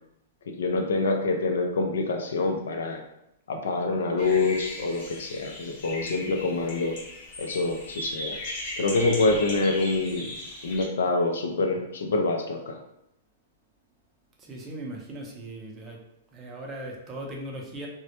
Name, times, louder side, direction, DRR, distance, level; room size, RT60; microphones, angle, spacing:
voice 1, 0.5-3.0 3.5-7.0 7.4-8.4 8.8-10.3 10.6-12.8, left 3 dB, 85° left, 4 dB, 0.4 m, -26 dB
sound 1, 4.2-10.9, left 1 dB, 45° left, 0.8 m, -38 dB
voice 2, 14.4-16.0 16.3-17.9, right 1 dB, 20° right, -1 dB, 0.5 m, -38 dB
2.1 x 2.0 x 2.8 m, 0.81 s
hypercardioid pair, 145°, 0 cm